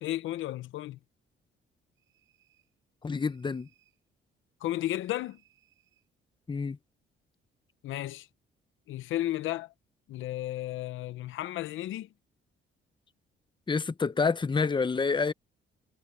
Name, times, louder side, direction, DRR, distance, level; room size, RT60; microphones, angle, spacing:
voice 1, 0.0-1.0 4.6-5.4 7.8-8.3 8.9-9.7 10.1-12.1, left 14 dB, 85° left, 0.8 m, -33 dB
sound 1, 1.9-2.8 3.1-4.0 5.0-6.1, right 13 dB, 75° right, 7.1 m, -69 dB
voice 2, 3.0-3.7 6.5-6.8 13.7-15.3, left 4 dB, 25° left, 0.9 m, -28 dB
cardioid pair, 90°, 20 cm